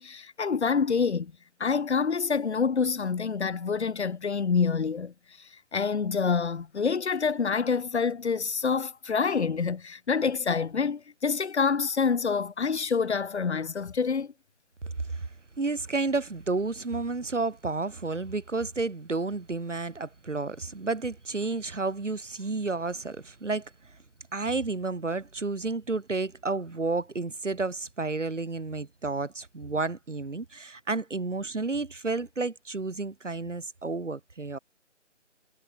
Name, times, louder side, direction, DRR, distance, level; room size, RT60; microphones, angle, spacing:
voice 1, 0.0-1.3 1.6-14.3, left 5 dB, 65° left, 1.2 m, -27 dB
voice 2, 15.6-23.7 24.3-34.6, right 3 dB, 80° right, 5.8 m, -31 dB
figure-of-eight pair, 160°, 36 cm